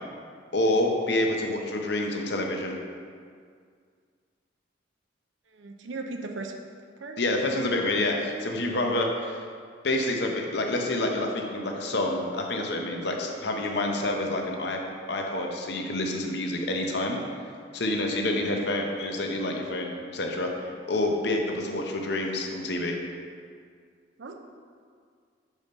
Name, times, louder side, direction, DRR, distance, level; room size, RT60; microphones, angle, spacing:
voice 1, 0.5-2.7 7.2-9.4 9.8-14.8 15.1-17.2 17.7-23.0, left 1 dB, 60° left, 2 dB, 0.8 m, -28 dB
voice 2, 5.5-6.5 7.0-7.2 18.0-18.6 24.2-24.4, right 3 dB, 80° right, 3 dB, 0.6 m, -38 dB
5.4 x 4.9 x 5.2 m, 2.1 s
head